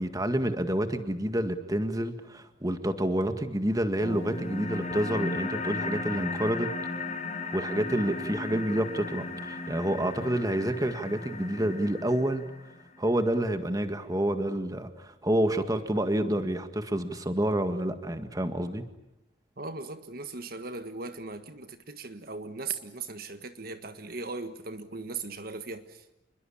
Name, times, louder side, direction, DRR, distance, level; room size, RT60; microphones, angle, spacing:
voice 1, 0.0-6.7 7.5-12.4 13.0-18.8, right 1 dB, 20° right, 1.9 m, -28 dB
sound 1, 4.0-13.0, left 3 dB, 40° left, 5.5 m, -36 dB
voice 2, 19.6-26.1, right 4 dB, 55° right, 1.6 m, -38 dB
28.5 x 22.0 x 8.7 m
head